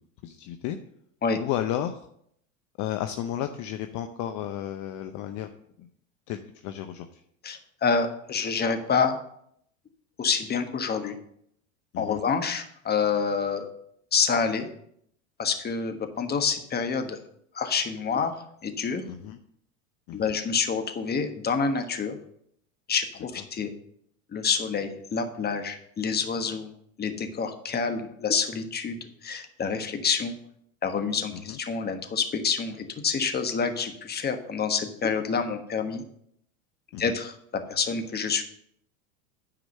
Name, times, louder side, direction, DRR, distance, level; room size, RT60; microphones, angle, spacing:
voice 1, 0.2-0.8 1.4-2.1 2.8-5.5 5.8-5.9 6.3-7.2 11.9-12.2 19.1-19.4 20.1-20.3 23.4-23.5 31.3-31.6 36.9-37.2, left 11 dB, 45° left, 7 dB, 0.8 m, -33 dB
voice 2, 7.4-9.2 10.2-11.1 12.0-13.7 14.1-14.7 15.4-17.2 17.5-18.3 18.6-19.0 20.1-22.2 22.9-23.7 24.3-26.7 27.0-30.3 30.8-36.0 37.0-37.3 37.7-38.4, left 5 dB, 25° left, 7 dB, 1.3 m, -27 dB
9.4 x 5.0 x 6.6 m, 0.71 s
hypercardioid pair, 90°, 42 cm